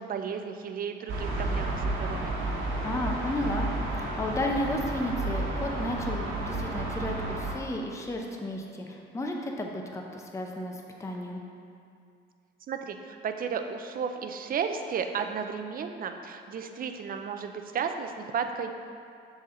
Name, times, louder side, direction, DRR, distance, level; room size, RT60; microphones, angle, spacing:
voice 1, 0.0-2.4 12.7-18.7, right 6 dB, 45° right, 6 dB, 0.5 m, -33 dB
sound 1, 1.1-7.5, right 2 dB, 75° right, 1.2 m, -31 dB
voice 2, 2.8-3.7 3.9-11.4, left 1 dB, 15° left, 1 dB, 0.6 m, -33 dB
6.4 x 4.2 x 3.7 m, 2.4 s
cardioid pair, 90°, 20 cm